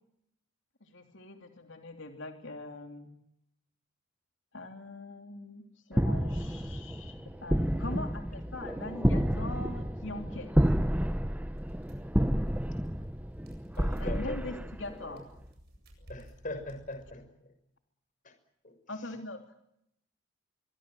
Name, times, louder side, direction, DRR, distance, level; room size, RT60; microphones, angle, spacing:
voice 1, 0.8-3.1 4.5-7.1 7.4-10.5 14.0-15.3 18.9-19.4, left 2 dB, 65° left, 5 dB, 3.1 m, -42 dB
sound 1, 5.9-15.2, equal, 5° right, 0.9 m, -30 dB
sound 2, 11.5-17.1, equal, 50° right, 8.0 m, -55 dB
voice 2, 13.8-14.4 16.1-17.2 18.6-18.7, left 1 dB, 40° left, 8 dB, 5.9 m, -39 dB
25.0 x 24.0 x 7.7 m, 0.76 s
head